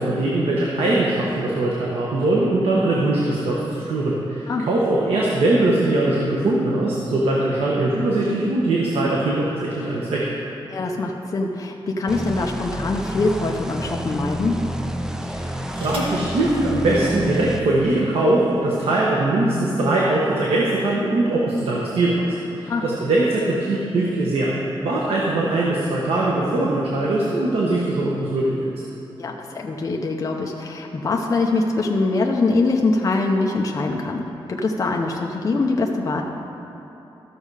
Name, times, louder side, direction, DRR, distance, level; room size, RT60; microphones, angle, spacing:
voice 1, 0.0-10.3 15.2-22.3 22.5-24.6 24.8-28.7, right 2 dB, 85° right, -4 dB, 1.2 m, -21 dB
voice 2, 10.7-14.6 22.7-22.8 29.2-36.2, left 3 dB, 35° left, 0 dB, 0.6 m, -23 dB
sound 1, 11.6-12.7 13.5-13.6 15.2-16.3 17.4-17.5 17.9-18.2, right 1 dB, 65° right, 1.9 m, -41 dB
sound 2, 12.1-17.6, equal, 5° right, 0.4 m, -29 dB
14.0 x 6.5 x 4.8 m, 2.9 s
wide cardioid pair, 170°, 10 cm